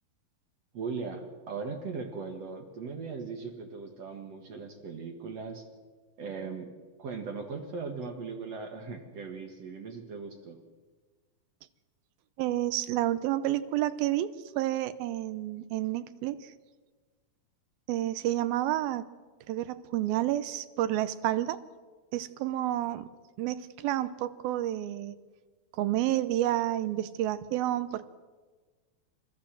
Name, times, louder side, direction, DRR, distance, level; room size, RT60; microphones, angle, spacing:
voice 1, 0.7-5.7 6.2-6.7 7.0-10.6, right 4 dB, 50° right, 4 dB, 2.4 m, -38 dB
voice 2, 12.4-14.3 14.6-16.5 17.9-19.0 19.5-21.6 22.1-23.1 23.4-25.2 25.7-28.1, right 13 dB, 85° right, 13 dB, 2.7 m, -30 dB
29.5 x 14.5 x 7.5 m, 1.4 s
omnidirectional pair, 4.2 m